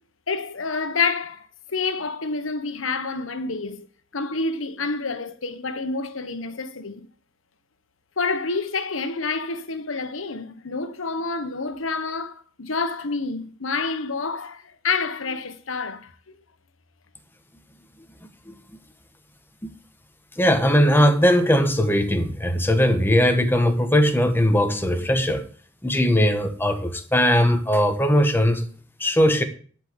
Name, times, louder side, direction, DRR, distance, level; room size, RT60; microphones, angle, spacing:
voice 1, 0.3-3.9 4.1-7.1 8.2-16.4, left 4 dB, 85° left, 1.2 m, -28 dB
voice 2, 20.4-25.5 25.8-28.7 29.0-29.4, equal, 10° left, 1.4 m, -19 dB
11.5 x 5.3 x 7.9 m
head